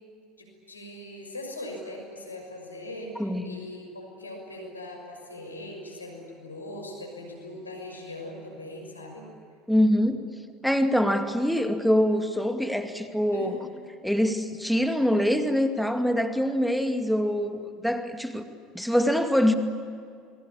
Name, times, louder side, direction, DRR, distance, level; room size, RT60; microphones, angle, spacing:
voice 1, 0.4-9.3 13.3-13.5, left 1 dB, 85° left, 1 dB, 6.3 m, -40 dB
voice 2, 3.2-3.6 9.7-10.2 10.6-13.6 14.0-18.4 18.7-19.5, equal, ahead, 7 dB, 2.3 m, -24 dB
27.5 x 21.5 x 8.7 m, 2.3 s
figure-of-eight pair, 70°, 0 cm